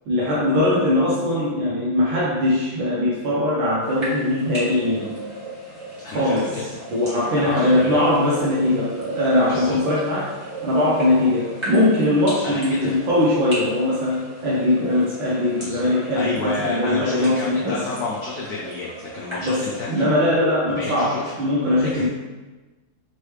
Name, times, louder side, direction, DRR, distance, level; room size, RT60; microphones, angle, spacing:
voice 1, 0.1-5.2 6.0-6.6 6.9-10.3 10.6-17.8 19.4-19.6 19.9-22.1, left 1 dB, 70° right, -6 dB, 1.4 m, -21 dB
sound 1, 3.8-20.0, right 1 dB, 15° right, 1.2 m, -37 dB
voice 2, 6.0-6.6 7.4-8.0 9.4-9.8 12.4-13.0 15.5-15.9 16.2-20.1 20.7-21.4 21.8-22.1, left 3 dB, 85° left, -5 dB, 0.8 m, -31 dB
4.5 x 3.1 x 3.1 m, 1.2 s
omnidirectional pair, 2.4 m